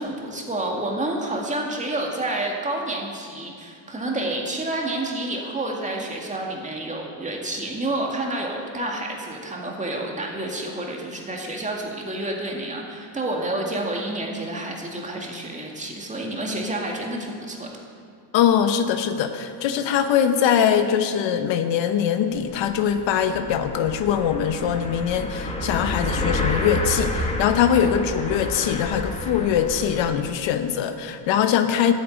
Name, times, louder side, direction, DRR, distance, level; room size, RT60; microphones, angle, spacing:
voice 1, 0.0-17.7, right 1 dB, 15° right, 0 dB, 2.1 m, -29 dB
voice 2, 18.3-31.9, left 8 dB, 65° left, 9 dB, 1.0 m, -22 dB
sound 1, 22.4-22.5 22.7-30.2, left 1 dB, 15° left, 1.5 m, -29 dB
12.0 x 8.6 x 8.9 m, 2.3 s
cardioid pair, 140°, 48 cm